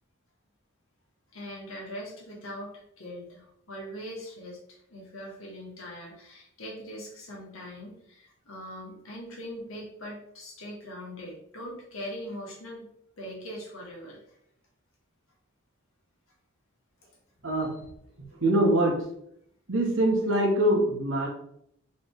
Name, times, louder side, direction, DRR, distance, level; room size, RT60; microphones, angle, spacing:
voice 1, 1.3-12.9 13.2-14.4 17.6-17.8, equal, 75° left, -2 dB, 1.6 m, -41 dB
voice 2, 18.2-18.9 19.7-21.3, right 1 dB, 60° right, -1 dB, 1.2 m, -24 dB
4.0 x 3.3 x 3.6 m, 0.71 s
head